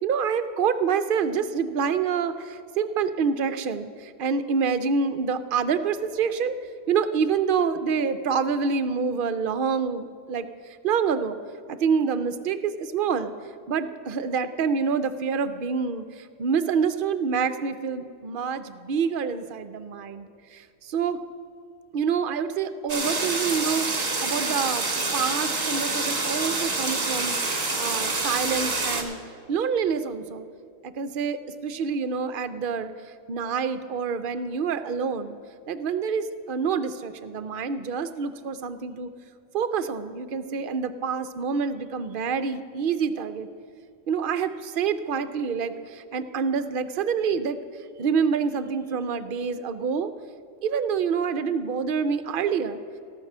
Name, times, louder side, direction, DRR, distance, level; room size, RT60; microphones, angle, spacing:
voice 1, 0.0-6.5 6.9-10.5 10.8-11.4 11.7-13.3 13.7-21.2 21.9-24.9 25.1-29.2 29.5-30.4 31.0-31.4 31.6-32.9 33.3-35.4 35.7-39.1 39.5-43.5 44.1-47.6 48.0-50.1 50.6-52.8, right 6 dB, 55° right, 12 dB, 0.6 m, -27 dB
sound 1, 22.9-29.0, right 3 dB, 30° right, 1.4 m, -27 dB
17.0 x 6.7 x 6.0 m, 2.4 s
omnidirectional pair, 1.4 m